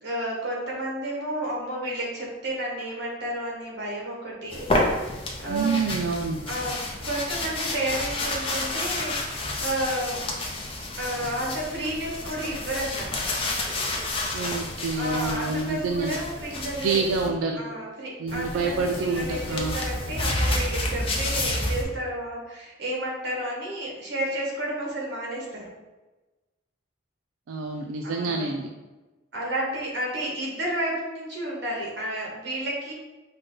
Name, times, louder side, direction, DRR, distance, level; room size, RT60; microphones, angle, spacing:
voice 1, 0.0-5.8 6.5-6.8 7.0-10.2 11.0-13.3 14.9-17.3 17.6-25.6 28.0-28.6 29.3-32.9, right 1 dB, 60° right, -2 dB, 1.2 m, -31 dB
sound 1, 4.5-17.3 18.3-21.8, left 1 dB, 30° left, 0.6 m, -30 dB
voice 2, 5.5-6.5 14.3-16.2 16.8-17.6 18.2-19.8 27.5-28.7, right 4 dB, 90° right, 2 dB, 0.4 m, -27 dB
5.0 x 2.2 x 3.8 m, 1.2 s
head